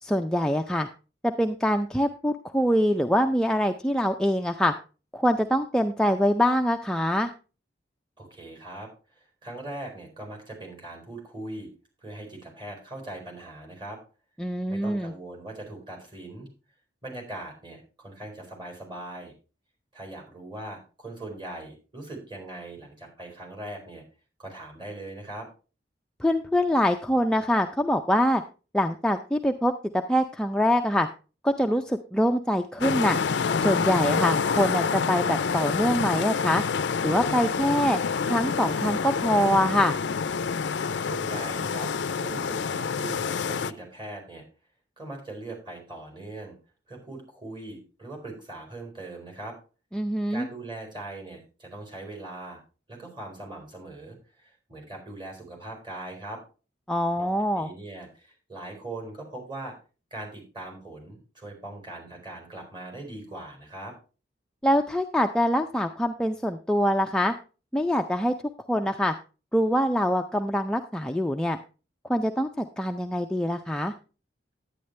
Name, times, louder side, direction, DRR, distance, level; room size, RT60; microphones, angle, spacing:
voice 1, 0.0-0.9 1.2-4.7 5.1-7.3 14.4-15.1 26.2-28.4 28.7-31.1 31.4-33.2 33.6-36.6 37.0-38.0 38.3-40.0 49.9-50.5 56.9-57.7 64.6-67.3 67.7-68.3 68.7-69.1 69.5-71.6 72.1-73.9, equal, 5° left, 4 dB, 0.4 m, -24 dB
voice 2, 8.2-11.7 12.0-14.0 14.7-16.5 17.0-19.3 19.9-24.0 24.4-25.5 41.0-41.9 42.2-44.4 45.0-46.6 46.9-49.6 50.3-52.6 52.9-56.4 57.2-59.7 60.1-63.9, right 2 dB, 25° right, 1 dB, 4.1 m, -40 dB
sound 1, 32.8-43.7, left 5 dB, 75° left, 0.5 m, -27 dB
10.5 x 9.4 x 3.2 m, 0.33 s
head